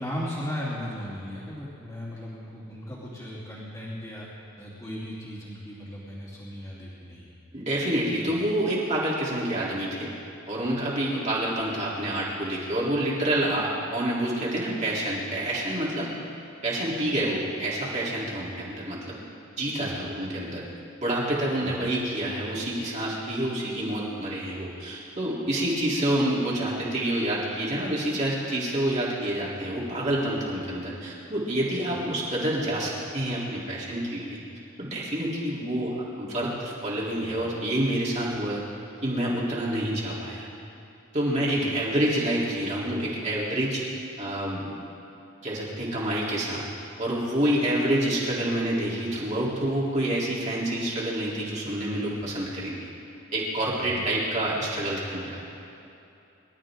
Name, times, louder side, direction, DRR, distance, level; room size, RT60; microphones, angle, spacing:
voice 1, 0.0-4.3 4.6-7.3 19.7-20.0 21.6-21.7 31.9-32.0 41.5-41.7 47.4-47.5 53.8-54.0, equal, 15° left, -9 dB, 3.0 m, -37 dB
voice 2, 7.5-10.1 10.5-16.2 16.6-19.3 19.6-20.6 21.0-34.4 34.8-38.6 39.0-40.5 41.1-43.8 44.2-44.8 45.4-46.6 47.0-52.9 53.3-55.4, right 1 dB, 35° right, -6 dB, 3.5 m, -28 dB
25.0 x 13.0 x 3.8 m, 2.8 s
head